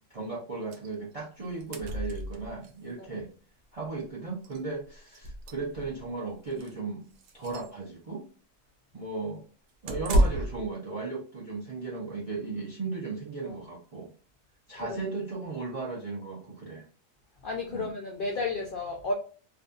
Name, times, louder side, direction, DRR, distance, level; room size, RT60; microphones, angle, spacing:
voice 1, 0.1-3.3 3.7-7.0 7.3-8.2 8.9-9.4 9.8-14.1 14.7-16.9 17.7-17.9, right 3 dB, 50° right, -2 dB, 0.4 m, -36 dB
sound 1, 0.7-0.9 1.2-1.3 1.5-2.7 4.0-4.1 4.4-4.6 5.1-6.0 6.5-6.7 7.2-7.7 9.9-10.7, right 1 dB, 75° right, 0.9 m, -29 dB
voice 2, 17.4-19.1, left 3 dB, 70° left, 1 dB, 0.5 m, -33 dB
2.5 x 2.4 x 2.3 m, 0.40 s
omnidirectional pair, 1.4 m